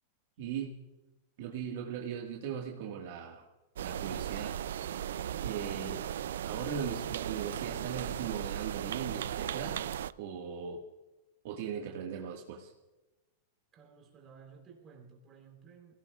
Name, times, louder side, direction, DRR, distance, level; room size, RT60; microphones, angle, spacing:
voice 1, 0.4-0.8 1.4-3.5 3.8-4.6 5.4-6.0 6.4-9.8 10.2-10.8 11.4-12.7, right 7 dB, 55° right, 1.6 m, -39 dB
sound 1, 3.8-10.1, right 10 dB, 90° right, 0.4 m, -37 dB
voice 2, 13.7-15.9, right 6 dB, 20° right, 3.6 m, -55 dB
27.5 x 17.5 x 2.4 m
supercardioid pair, 165°, 0 cm